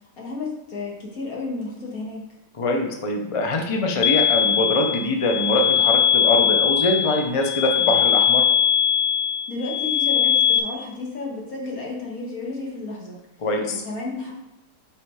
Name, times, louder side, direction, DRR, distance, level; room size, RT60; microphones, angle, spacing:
voice 1, 0.2-2.3 9.5-13.2 13.9-14.3, left 3 dB, 55° left, -3 dB, 2.1 m, -32 dB
voice 2, 2.6-8.5 13.4-13.8, left 2 dB, 40° left, 3 dB, 0.5 m, -23 dB
sound 1, 4.0-10.6, left 8 dB, 90° left, 1.3 m, -20 dB
5.9 x 5.1 x 4.8 m, 0.94 s
omnidirectional pair, 1.8 m